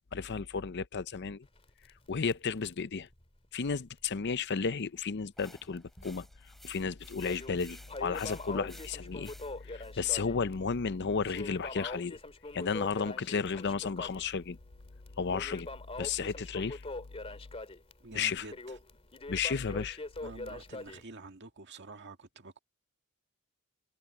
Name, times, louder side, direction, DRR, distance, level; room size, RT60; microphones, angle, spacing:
voice 1, 0.1-1.5 2.1-3.1 3.5-6.3 6.6-9.3 9.6-12.2 12.5-14.6 15.2-15.7 16.0-16.8 18.1-18.4 19.3-20.0, left 5 dB, 50° left, 0.6 m, -33 dB
Crackle, 1.4-4.1 4.4-4.5 5.0-5.1 5.8-6.4 6.8-21.0, left 2 dB, 25° left, 2.7 m, -43 dB
sound 1, 5.4-9.9, equal, ahead, 3.0 m, -55 dB
voice 2, 18.0-18.8 20.2-22.6, right 3 dB, 55° right, 2.1 m, -48 dB
head